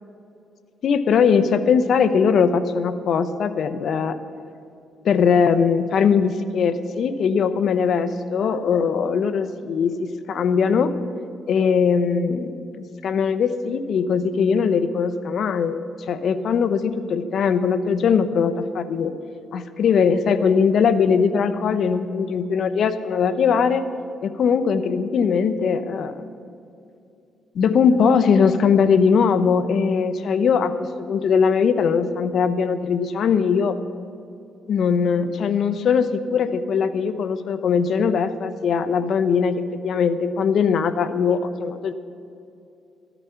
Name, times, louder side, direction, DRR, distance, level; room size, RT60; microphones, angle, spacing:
voice 1, 0.8-4.2 5.0-10.9 11.5-15.8 16.1-19.1 19.5-23.9 24.2-26.3 27.5-33.8 34.7-41.9, left 6 dB, 65° left, 12 dB, 0.7 m, -20 dB
13.5 x 12.0 x 5.7 m, 2.6 s
cardioid pair, 90°, 0 cm